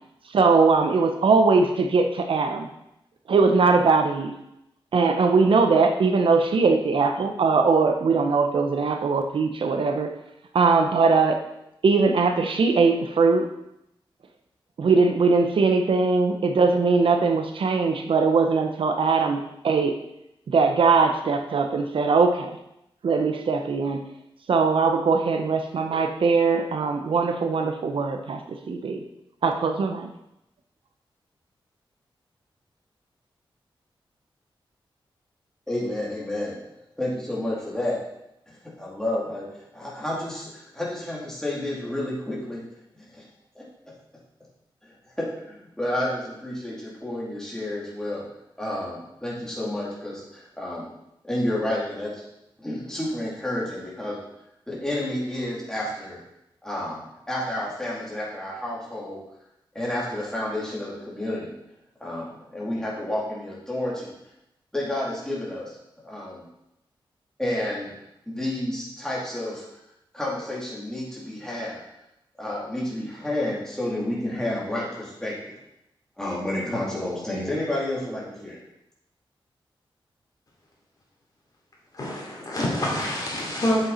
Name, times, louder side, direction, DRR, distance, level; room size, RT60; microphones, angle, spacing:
voice 1, 0.3-2.7 3.3-4.3 4.9-10.1 10.5-11.4 11.8-13.5 14.8-20.0 20.5-22.5 23.0-24.0 24.5-29.0 29.4-30.1, right 4 dB, 70° right, 6 dB, 0.8 m, -21 dB
voice 2, 35.7-36.5 37.0-38.0 38.8-39.4 39.7-42.6 43.6-43.7 45.2-45.3 45.8-48.2 48.6-50.9 51.3-52.1 52.6-54.2 54.7-56.2 56.6-57.0 57.3-59.2 59.7-61.5 62.0-62.3 62.5-64.1 64.7-65.6 66.0-66.4 67.4-67.9 68.3-69.6 70.1-71.8 72.4-75.5 76.2-78.6, left 1 dB, 5° left, -5 dB, 3.2 m, -30 dB
voice 3, 81.9-83.9, left 1 dB, 45° left, -4 dB, 3.5 m, -26 dB
7.8 x 7.7 x 4.3 m, 0.84 s
wide cardioid pair, 100°, 9 cm